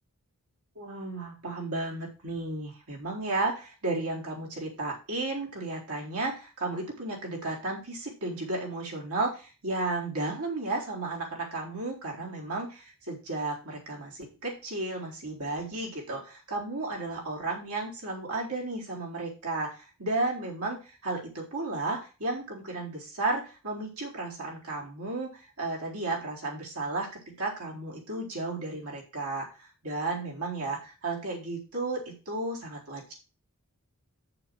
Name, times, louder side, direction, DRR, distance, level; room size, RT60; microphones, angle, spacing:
voice 1, 0.8-33.1, right 2 dB, 75° right, -3 dB, 4.1 m, -33 dB
7.1 x 6.8 x 6.2 m, 0.32 s
head